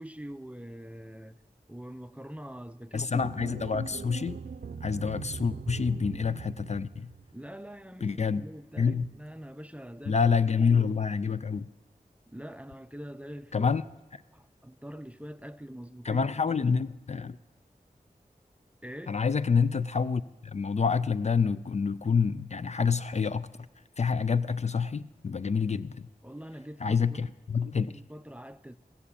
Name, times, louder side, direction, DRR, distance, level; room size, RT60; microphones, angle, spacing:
voice 1, 0.0-1.4 1.7-3.3 3.7-3.8 7.3-10.3 12.3-13.7 14.3-16.6 18.8-19.2 26.2-27.3 27.9-28.8, equal, 10° right, 0.5 m, -44 dB
voice 2, 2.9-4.4 4.8-7.1 8.0-8.5 8.8-9.0 10.1-11.7 13.5-13.8 16.0-17.4 19.1-23.5 24.0-26.1 26.8-27.9, left 5 dB, 45° left, 0.4 m, -27 dB
sound 1, 3.2-7.5, right 5 dB, 80° right, 0.5 m, -41 dB
16.5 x 7.1 x 8.4 m
wide cardioid pair, 75°, 16 cm